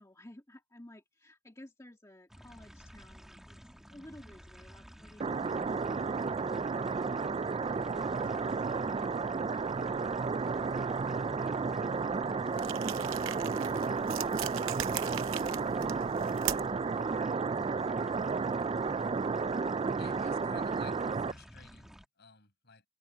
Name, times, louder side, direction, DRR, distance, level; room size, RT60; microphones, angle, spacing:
voice 1, 0.0-6.3 6.8-10.0 10.5-13.5 14.2-18.2, left 1 dB, 15° left, 1.8 m, -56 dB
sound 1, 2.3-22.0, equal, ahead, 1.7 m, -53 dB
sound 2, 5.2-21.3, right 4 dB, 25° right, 0.3 m, -32 dB
sound 3, 12.5-16.9, right 12 dB, 60° right, 0.8 m, -39 dB
voice 2, 20.0-22.8, left 5 dB, 50° left, 7.9 m, -55 dB
head